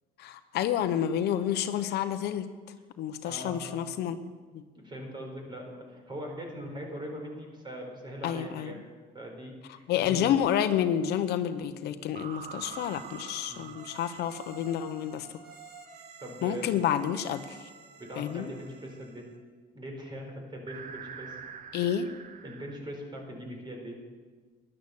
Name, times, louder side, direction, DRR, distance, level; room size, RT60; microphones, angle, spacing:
voice 1, 0.2-2.5 3.0-4.2 4.5-4.6 8.2-8.7 9.9-15.3 16.4-17.7 18.2-18.5 21.7-22.1, left 10 dB, 75° left, 10 dB, 0.9 m, -29 dB
voice 2, 3.2-4.0 4.7-8.8 9.1-10.3 13.5-13.7 16.2-16.8 18.0-19.3 19.7-21.4 22.4-24.0, equal, 25° right, 1 dB, 4.4 m, -41 dB
sound 1, 6.2-7.0 12.2-15.8 20.7-22.8, right 7 dB, 50° right, 0.9 m, -46 dB
sound 2, 12.7-19.4, right 5 dB, 80° right, 1.8 m, -51 dB
13.0 x 11.0 x 7.0 m, 1.4 s
cardioid pair, 110°, 17 cm